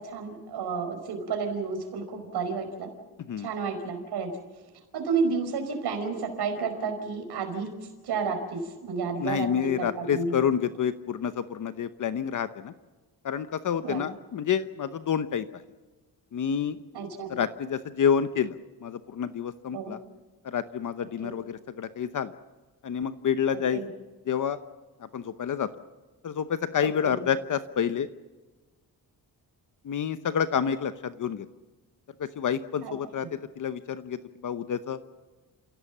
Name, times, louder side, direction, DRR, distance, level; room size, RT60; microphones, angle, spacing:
voice 1, 0.0-2.9 3.4-4.3 4.9-7.7 8.0-10.3 13.8-14.0 16.9-17.4 19.7-19.9 21.2-21.3 23.7-23.9 27.0-27.2 32.8-32.9 33.2-33.3, right 5 dB, 90° right, 5 dB, 5.0 m, -31 dB
voice 2, 9.2-12.7 13.2-15.6 16.3-16.8 17.3-20.0 20.4-22.3 22.8-23.8 24.3-24.6 25.0-25.7 26.2-28.1 29.8-31.5 32.2-35.0, left 8 dB, 55° left, 12 dB, 0.9 m, -28 dB
29.0 x 16.5 x 7.3 m, 1.3 s
cardioid pair, 135°, 38 cm